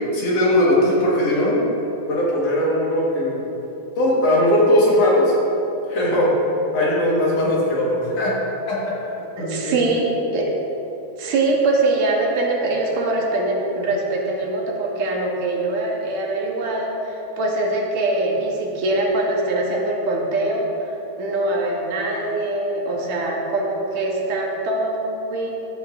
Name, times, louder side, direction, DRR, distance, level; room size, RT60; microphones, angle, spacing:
voice 1, 0.1-1.6 2.1-3.5 4.0-5.3 5.9-6.3 6.7-8.3 8.7-8.9 9.4-9.8, left 1 dB, 60° left, -5 dB, 2.4 m, -19 dB
voice 2, 9.4-10.6 11.2-25.5, right 2 dB, 75° right, -1 dB, 2.2 m, -23 dB
13.5 x 7.5 x 2.5 m, 3.0 s
omnidirectional pair, 3.4 m